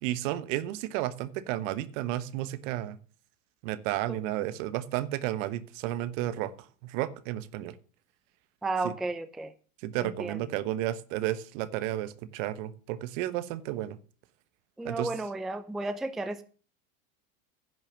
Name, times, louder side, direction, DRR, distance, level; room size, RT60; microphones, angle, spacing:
voice 1, 0.0-3.0 3.6-6.5 6.8-7.7 8.8-8.9 9.8-14.0 14.8-15.1, right 14 dB, 60° right, 1.1 m, -32 dB
voice 2, 8.6-9.5 10.0-10.4 14.8-16.4, right 2 dB, ahead, 0.5 m, -33 dB
10.5 x 6.4 x 7.1 m
supercardioid pair, 125°, 42 cm